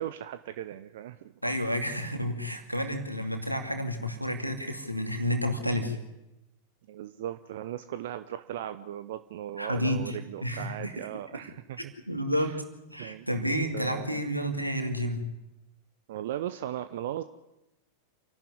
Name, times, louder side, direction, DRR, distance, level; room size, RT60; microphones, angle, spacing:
voice 1, 0.0-1.3 6.9-11.9 12.4-12.6 13.0-13.3 13.7-14.2 16.1-17.2, right 12 dB, 55° right, 12 dB, 0.7 m, -37 dB
voice 2, 1.4-6.0 9.6-11.1 12.1-12.6 12.9-15.2, equal, 90° right, 4 dB, 2.6 m, -30 dB
27.5 x 12.0 x 9.7 m, 0.95 s
figure-of-eight pair, 90°, 0 cm